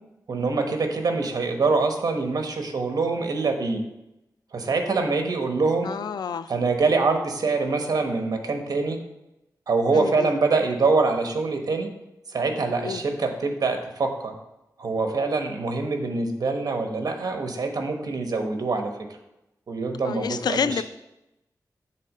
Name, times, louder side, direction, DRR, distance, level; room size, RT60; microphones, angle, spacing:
voice 1, 0.3-3.8 4.5-5.9 6.5-9.0 9.7-11.9 12.3-14.4 14.8-18.9 19.7-20.8, right 3 dB, 65° right, 5 dB, 1.1 m, -24 dB
voice 2, 5.8-6.5 9.9-10.3 12.8-13.0 20.0-20.8, left 6 dB, 85° left, 12 dB, 0.4 m, -28 dB
7.7 x 3.7 x 6.4 m, 0.91 s
wide cardioid pair, 110°, 7 cm